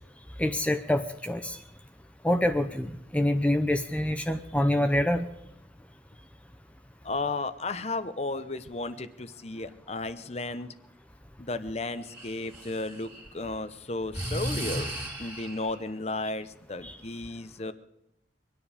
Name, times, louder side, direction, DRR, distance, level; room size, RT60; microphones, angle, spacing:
voice 1, 0.4-1.6 2.2-5.3 16.8-17.0, left 1 dB, 5° left, 7 dB, 0.6 m, -26 dB
voice 2, 7.0-10.7 11.4-14.9 15.2-17.7, left 2 dB, 35° left, 12 dB, 0.8 m, -34 dB
Breathing, 12.1-13.3 14.1-15.7, right 1 dB, 10° right, 2.7 m, -34 dB
24.0 x 10.0 x 5.1 m, 0.85 s
head